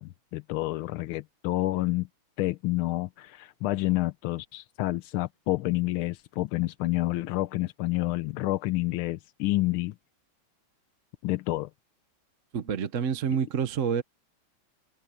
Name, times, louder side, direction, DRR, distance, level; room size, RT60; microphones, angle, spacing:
voice 1, 0.0-2.1 2.4-9.9 11.2-11.7, left 17 dB, 90° left, 1.5 m, -29 dB
voice 2, 12.5-14.0, right 7 dB, 50° right, 1.1 m, -28 dB
omnidirectional pair, 2.3 m